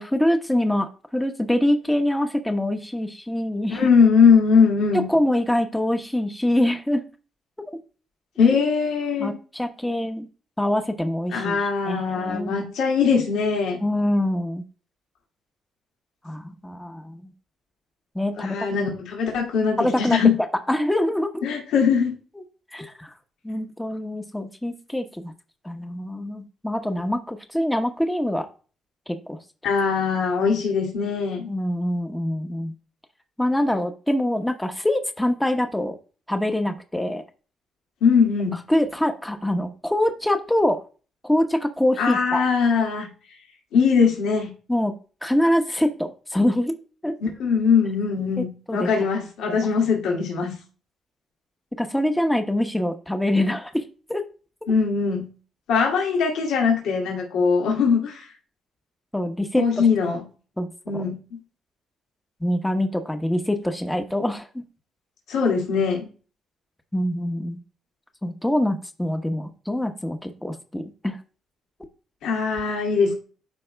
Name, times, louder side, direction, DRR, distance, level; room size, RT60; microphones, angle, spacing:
voice 1, 0.0-3.9 5.1-7.0 7.7-7.8 9.2-10.3 10.6-11.6 11.9-12.7 13.8-14.6 16.2-17.3 18.1-18.6 19.8-20.2 20.7-21.4 22.4-22.5 22.7-23.1 23.4-25.3 25.6-28.5 29.1-29.4 31.5-32.7 33.4-36.0 36.3-37.2 38.7-40.8 41.2-42.4 44.7-44.9 45.2-46.7 47.0-47.2 48.4-49.1 49.5-49.6 51.8-53.8 54.1-54.2 59.1-59.7 60.6-60.7 60.9-61.0 62.4-64.6 66.9-67.6 68.2-71.2, left 1 dB, 5° left, 6 dB, 0.9 m, -24 dB
voice 2, 3.7-5.1 8.4-9.4 11.3-13.8 18.4-20.4 21.4-22.2 29.6-31.5 38.0-38.6 42.0-43.1 43.7-44.5 47.2-50.5 54.7-55.3 55.7-58.3 59.6-60.2 60.9-61.2 65.3-66.1 72.2-73.1, left 5 dB, 85° left, -1 dB, 2.0 m, -21 dB
12.5 x 4.7 x 2.2 m, 0.37 s
cardioid pair, 90°, 0 cm